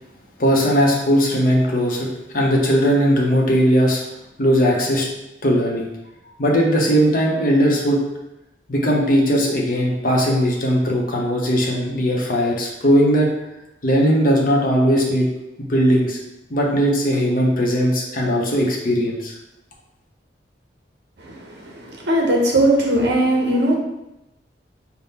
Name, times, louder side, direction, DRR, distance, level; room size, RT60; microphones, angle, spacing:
voice 1, 0.4-4.0 4.4-5.1 5.4-5.9 6.4-8.0 8.7-13.3 13.8-15.3 15.6-16.2 16.5-19.3, equal, 50° left, -2 dB, 0.8 m, -18 dB
voice 2, 21.2-23.8, right 1 dB, 65° right, -1 dB, 0.8 m, -19 dB
3.6 x 2.2 x 4.1 m, 0.92 s
head